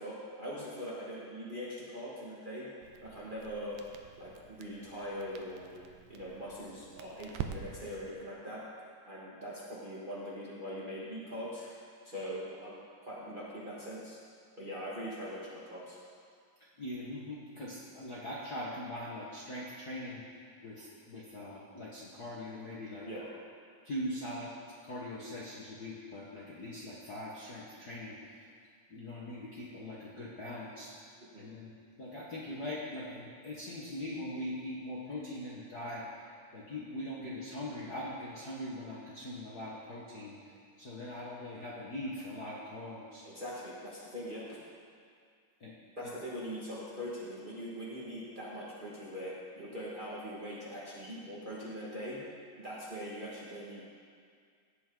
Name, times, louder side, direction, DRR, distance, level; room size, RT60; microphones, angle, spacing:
voice 1, 0.0-2.7 3.0-3.8 4.2-5.8 6.1-8.6 9.1-11.7 12.0-12.8 13.0-14.2 14.6-16.0 23.0-23.3 31.3-31.5 43.2-44.6 46.0-52.2 52.6-53.8, equal, 70° right, -7 dB, 0.4 m, -42 dB
Crackle, 2.8-8.1, right 8 dB, 90° right, 2.3 m, -46 dB
voice 2, 16.8-23.1 23.8-24.5 24.8-28.5 28.9-30.9 31.3-31.7 32.0-43.2 45.6-45.7 46.0-46.1, left 1 dB, 85° left, -6 dB, 0.8 m, -41 dB
17.0 x 8.2 x 3.8 m, 2.1 s
omnidirectional pair, 3.9 m